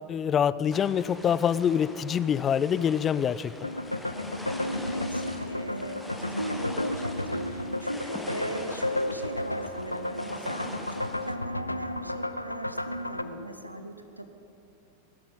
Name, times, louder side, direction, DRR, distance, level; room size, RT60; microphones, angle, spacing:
voice 1, 0.1-3.5, left 8 dB, 25° left, 17 dB, 0.3 m, -25 dB
sound 1, 0.7-11.4, left 1 dB, 5° left, 1.2 m, -43 dB
sound 2, 3.6-13.2, left 1 dB, 85° left, 0.5 m, -33 dB
voice 2, 4.8-14.3, right 1 dB, 90° right, 8 dB, 1.0 m, -38 dB
18.5 x 12.5 x 5.4 m, 2.8 s
figure-of-eight pair, 90°, 0 cm